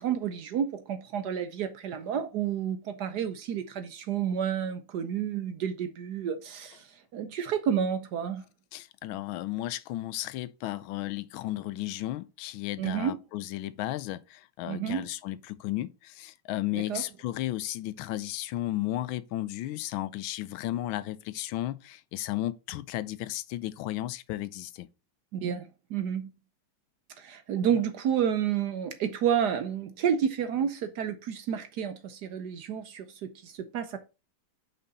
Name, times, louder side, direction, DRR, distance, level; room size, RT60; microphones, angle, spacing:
voice 1, 0.0-8.4 12.8-13.2 14.7-15.0 16.9-17.0 25.3-26.3 27.2-34.0, right 8 dB, 65° right, 1.1 m, -30 dB
voice 2, 8.7-24.9, left 15 dB, 80° left, 1.4 m, -34 dB
5.7 x 5.3 x 4.0 m
omnidirectional pair, 2.2 m